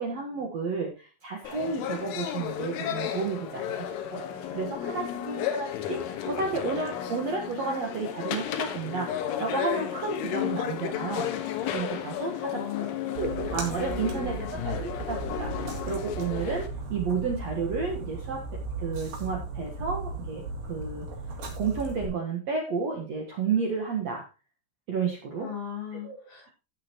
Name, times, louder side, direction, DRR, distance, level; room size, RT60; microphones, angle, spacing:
voice 1, 0.0-11.3 11.7-12.6 13.2-18.5 18.8-20.4 20.7-21.1 21.5-24.3 24.9-25.5 26.0-26.2, right 5 dB, 85° right, 1 dB, 1.4 m, -32 dB
sound 1, 1.4-16.7, left 10 dB, 90° left, 3.8 m, -33 dB
voice 2, 4.7-5.6 12.2-13.2 13.8-14.5 25.4-26.5, left 8 dB, 70° left, -7 dB, 6.3 m, -39 dB
Splash splatter, 13.2-22.1, right 3 dB, 50° right, 4.1 m, -36 dB
16.0 x 6.9 x 3.0 m, 0.30 s
omnidirectional pair, 5.5 m